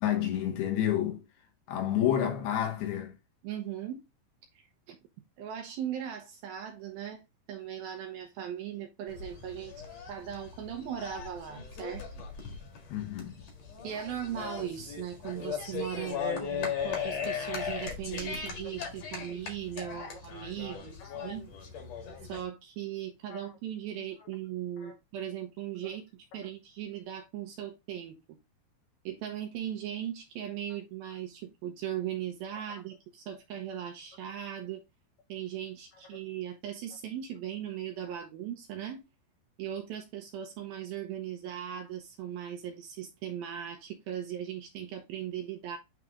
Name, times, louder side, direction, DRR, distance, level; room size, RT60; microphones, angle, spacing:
voice 1, 0.0-1.2 1.7-3.1 12.9-13.4 19.2-19.3 20.0-20.1 21.0-21.2 23.3-23.5 24.8-24.9 32.7-32.8, left 10 dB, 75° left, 2.9 m, -30 dB
voice 2, 3.4-4.0 4.6-5.0 5.4-7.2 7.5-12.0 13.8-21.4 22.3-28.2 29.1-34.8 35.3-39.0 39.6-45.8, right 10 dB, 75° right, 2.4 m, -38 dB
sound 1, 9.1-22.4, left 6 dB, 50° left, 2.2 m, -38 dB
9.2 x 3.2 x 3.6 m
omnidirectional pair, 5.0 m